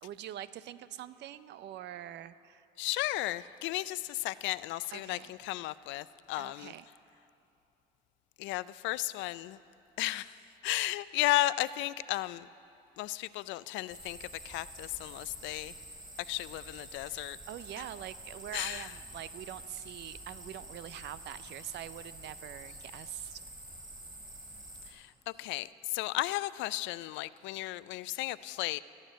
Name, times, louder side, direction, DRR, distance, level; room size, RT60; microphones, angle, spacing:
voice 1, 0.0-2.6 4.9-5.4 6.3-6.9 17.1-23.4, right 12 dB, 65° right, 15 dB, 0.5 m, -44 dB
voice 2, 2.8-6.7 8.4-9.6 10.0-10.3 10.6-12.5 13.0-14.2 14.4-15.7 16.3-17.4 18.5-18.8 25.4-25.7 25.9-28.8, left 17 dB, 75° left, 18 dB, 0.4 m, -34 dB
sound 1, 13.9-24.9, right 1 dB, 15° right, 4.3 m, -48 dB
16.0 x 7.5 x 9.1 m, 2.7 s
supercardioid pair, 75°, 20 cm